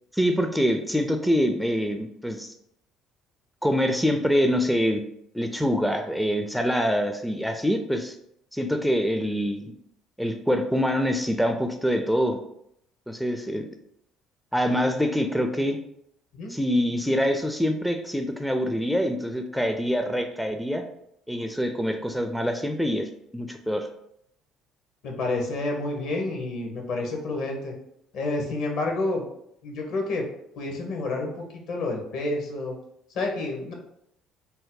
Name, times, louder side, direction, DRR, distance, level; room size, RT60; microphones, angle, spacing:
voice 1, 0.1-2.5 3.6-5.0 5.3-8.1 8.5-9.7 10.2-12.4 13.1-13.7 14.5-15.8 16.5-20.8 21.3-23.9, equal, ahead, 5 dB, 0.4 m, -25 dB
voice 2, 25.0-27.7 28.1-29.2 29.6-30.3 30.6-32.8 33.1-33.7, left 2 dB, 70° left, 1 dB, 0.9 m, -29 dB
2.7 x 2.1 x 3.6 m, 0.74 s
hypercardioid pair, 65°, 0 cm